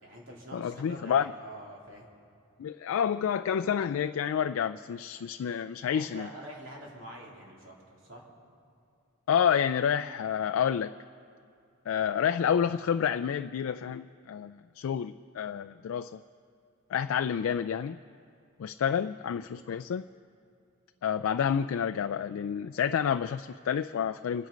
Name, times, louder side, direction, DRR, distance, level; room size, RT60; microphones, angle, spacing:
voice 1, 0.0-2.1 5.8-8.3 19.0-19.2, right 1 dB, 60° right, -3 dB, 3.3 m, -46 dB
voice 2, 0.5-1.3 2.6-6.3 9.3-10.9 11.9-16.2 16.9-18.0 18.6-20.0 21.0-24.5, left 8 dB, 70° left, 8 dB, 0.3 m, -29 dB
26.0 x 9.4 x 5.1 m, 2.5 s
head